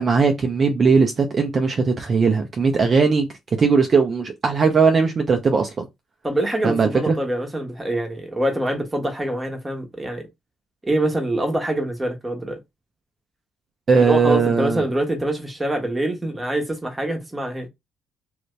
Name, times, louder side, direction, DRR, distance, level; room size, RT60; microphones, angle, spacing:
voice 1, 0.0-5.9 6.6-7.2 13.9-14.8, right 5 dB, 45° right, 0.7 m, -19 dB
voice 2, 6.2-10.3 10.8-12.6 14.0-17.7, right 1 dB, 15° right, 1.2 m, -25 dB
2.8 x 2.6 x 3.2 m
cardioid pair, 90°, 0 cm